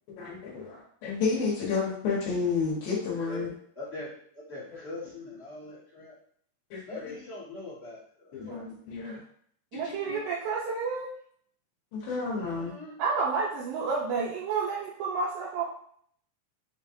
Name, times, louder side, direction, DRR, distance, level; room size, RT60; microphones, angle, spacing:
voice 1, 0.2-3.5 6.7-7.1 8.3-9.2 9.7-10.2 11.9-12.7, left 4 dB, 75° left, -6 dB, 3.0 m, -31 dB
voice 2, 3.7-6.2 6.9-8.8 12.3-12.9, left 2 dB, 45° left, -11 dB, 0.8 m, -43 dB
voice 3, 9.7-11.1 13.0-15.6, right 5 dB, 75° right, -5 dB, 2.4 m, -30 dB
7.1 x 2.4 x 2.7 m, 0.62 s
omnidirectional pair, 4.2 m